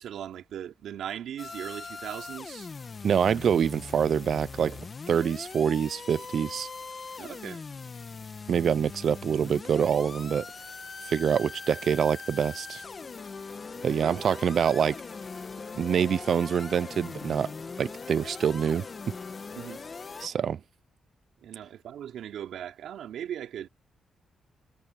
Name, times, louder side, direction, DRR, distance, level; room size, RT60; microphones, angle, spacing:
voice 1, 0.0-2.7 7.2-7.6 13.7-14.2 19.5-19.8 21.4-23.7, right 10 dB, 80° right, 3.1 m, -39 dB
sound 1, 1.4-20.3, left 4 dB, 30° left, 1.5 m, -41 dB
voice 2, 3.0-6.7 8.5-10.5 11.1-12.8 13.8-15.0 15.8-17.5 17.8-18.8 20.2-20.6, right 8 dB, 50° right, 0.4 m, -26 dB
wide cardioid pair, 160°, 0 cm